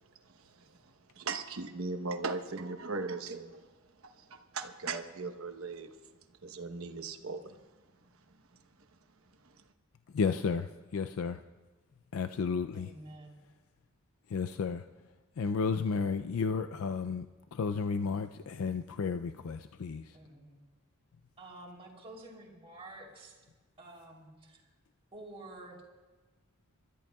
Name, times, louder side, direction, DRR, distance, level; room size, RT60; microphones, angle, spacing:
voice 1, 0.3-3.7 4.2-5.9 6.4-7.6 9.4-9.6, right 3 dB, 70° right, 1.0 m, -39 dB
voice 2, 10.1-11.4 12.1-12.9 14.3-14.8 15.4-17.3 17.5-20.2, left 5 dB, 75° left, 0.4 m, -32 dB
voice 3, 12.7-13.4 20.1-20.6 21.4-23.4 23.8-24.6 25.1-25.8, right 2 dB, 25° right, 3.2 m, -49 dB
27.5 x 13.5 x 2.3 m
head